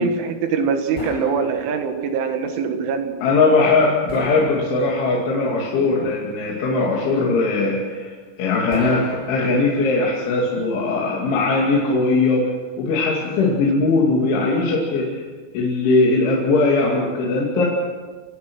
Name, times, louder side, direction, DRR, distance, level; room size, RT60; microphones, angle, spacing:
voice 1, 0.0-3.1, right 5 dB, 80° right, 6 dB, 4.1 m, -23 dB
sound 1, 1.0-2.1 4.1-5.3 8.7-10.0, equal, 15° right, 6.9 m, -35 dB
voice 2, 3.2-8.1 8.4-12.4 12.8-15.2 15.5-17.7, left 3 dB, 80° left, -3 dB, 5.0 m, -19 dB
26.0 x 18.0 x 6.3 m, 1.4 s
omnidirectional pair, 5.4 m